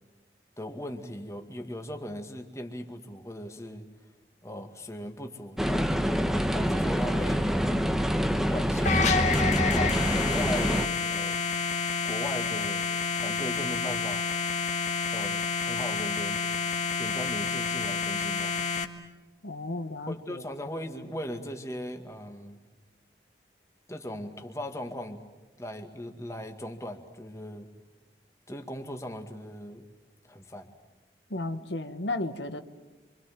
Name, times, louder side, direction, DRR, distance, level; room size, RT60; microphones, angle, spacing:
voice 1, 0.6-3.9 4.4-6.0 6.5-7.5 8.5-9.0 9.6-9.9 10.3-11.4 12.0-12.8 13.2-14.3 15.1-16.5 17.0-18.7 20.1-22.6 23.9-25.2 25.6-27.7 28.5-29.9 30.3-30.7, left 1 dB, 15° left, 4 dB, 2.1 m, -38 dB
sound 1, 5.6-10.9, equal, ahead, 1.1 m, -26 dB
sound 2, 8.8-18.8, left 4 dB, 40° left, 1.7 m, -29 dB
voice 2, 19.4-20.4 31.3-32.6, left 2 dB, 90° left, 8 dB, 1.6 m, -34 dB
27.5 x 25.5 x 7.6 m, 1.2 s
head